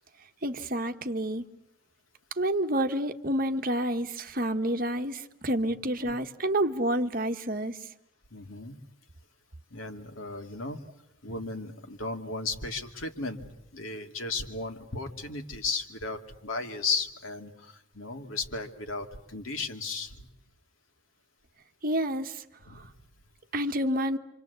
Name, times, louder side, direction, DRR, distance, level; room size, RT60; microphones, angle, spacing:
voice 1, 0.4-1.4 2.4-7.8 21.8-22.4 22.7-22.8 23.5-24.2, right 1 dB, 45° right, 7 dB, 1.3 m, -29 dB
voice 2, 8.3-8.8 9.7-10.8 11.2-20.3 22.7-22.9, left 3 dB, 90° left, 4 dB, 2.7 m, -35 dB
27.5 x 26.0 x 8.2 m, 0.78 s
head